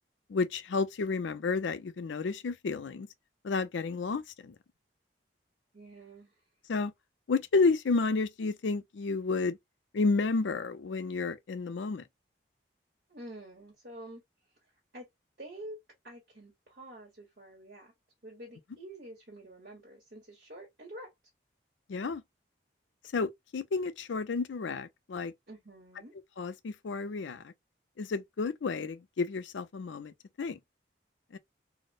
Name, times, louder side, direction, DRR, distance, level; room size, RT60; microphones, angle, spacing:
voice 1, 0.3-3.1 3.4-4.5 6.7-6.9 7.3-9.6 9.9-12.0 21.9-22.2 23.1-25.3 26.4-27.5 28.0-30.6 31.3-31.4, left 4 dB, 85° left, 0.5 m, -31 dB
voice 2, 5.7-6.4 13.1-14.2 14.9-15.1 15.4-15.8 16.0-17.9 18.2-21.1 25.5-26.1, right 1 dB, 60° right, 1.3 m, -48 dB
4.1 x 2.1 x 2.4 m
head